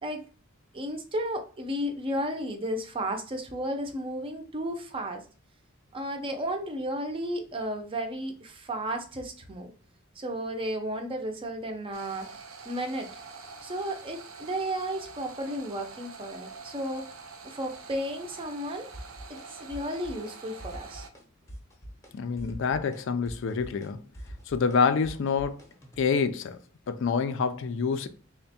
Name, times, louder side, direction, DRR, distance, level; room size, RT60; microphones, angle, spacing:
voice 1, 0.7-5.2 5.9-9.7 10.2-12.3 12.6-13.1 13.6-17.1 17.4-18.9 19.3-21.1, right 1 dB, 25° right, 0.5 m, -33 dB
sound 1, 11.9-21.1, right 4 dB, 85° right, 0.5 m, -46 dB
sound 2, 18.9-19.4 19.7-20.3 20.6-21.2 21.5-22.1 22.4-26.0, equal, 15° left, 0.7 m, -44 dB
voice 2, 22.1-24.0 24.5-25.6 26.0-26.6 26.9-28.1, left 5 dB, 65° left, 0.4 m, -27 dB
3.4 x 2.1 x 4.1 m
head